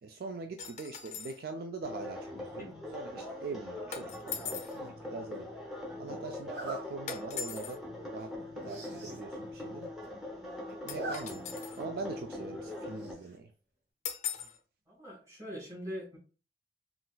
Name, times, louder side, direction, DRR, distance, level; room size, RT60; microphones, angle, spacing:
voice 1, 0.0-5.5 6.0-7.8 8.1-9.9 10.8-11.4 11.8-13.5, right 3 dB, 60° right, 5 dB, 0.3 m, -42 dB
sound 1, 0.6-1.4 3.9-4.8 7.1-7.8 10.9-11.8 14.0-14.6, left 8 dB, 40° left, 0.5 m, -40 dB
sound 2, 1.8-13.1, left 1 dB, 5° right, 0.7 m, -42 dB
Zipper (clothing), 4.5-4.9 6.4-6.8 7.4-7.6 7.9-8.0 8.2-8.3 8.6-9.2 9.6-9.7 9.8-10.4 10.7-11.2 11.5-11.6 13.0-13.4, right 2 dB, 85° right, 1.5 m, -41 dB
voice 2, 14.9-16.2, equal, 20° right, -5 dB, 1.5 m, -42 dB
3.9 x 2.4 x 2.2 m, 0.37 s
head